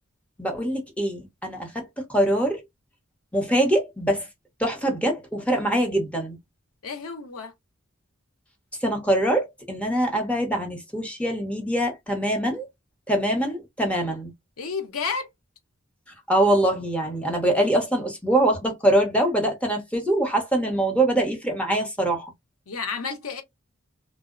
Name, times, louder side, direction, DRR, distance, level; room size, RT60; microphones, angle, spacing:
voice 1, 0.4-2.6 3.3-4.3 4.6-6.4 8.8-12.7 13.1-14.3 16.3-22.3, right 1 dB, 5° left, 0.7 m, -23 dB
voice 2, 6.8-7.5 14.6-15.3 22.7-23.4, left 5 dB, 90° left, 0.7 m, -31 dB
2.6 x 2.0 x 2.4 m
head